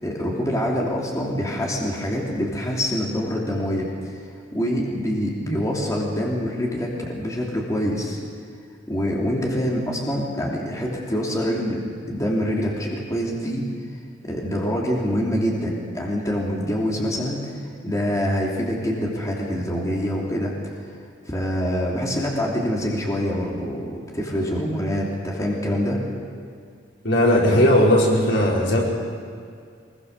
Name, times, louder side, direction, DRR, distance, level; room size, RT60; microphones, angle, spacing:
voice 1, 0.0-3.9 4.5-8.2 8.9-11.8 12.1-13.6 14.2-20.5 21.3-26.0, equal, 20° left, -3 dB, 3.1 m, -25 dB
voice 2, 27.0-28.8, left 1 dB, 75° left, -4 dB, 5.4 m, -17 dB
23.0 x 22.0 x 6.8 m, 2.3 s
head